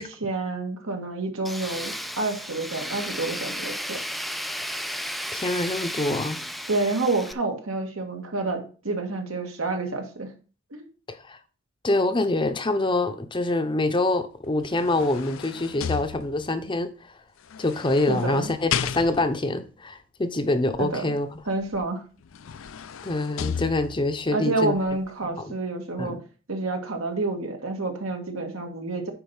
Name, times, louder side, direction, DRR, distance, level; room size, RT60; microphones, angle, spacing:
voice 1, 0.0-4.0 6.7-10.3 10.7-10.8 18.1-18.5 20.8-21.1 21.5-22.0 24.3-26.2 26.5-29.1, right 2 dB, 85° right, 1.9 m, -29 dB
Tools, 1.4-7.3, equal, ahead, 0.3 m, -33 dB
voice 2, 5.3-6.4 11.1-11.4 11.8-17.1 17.6-21.3 23.0-24.8 25.3-25.5 26.0-26.2, left 2 dB, 25° left, 0.7 m, -25 dB
sound 1, 14.4-16.7 17.5-19.5 21.7-21.8 22.2-24.2 24.8-24.9, left 8 dB, 75° left, 0.5 m, -34 dB
9.3 x 4.2 x 5.5 m
head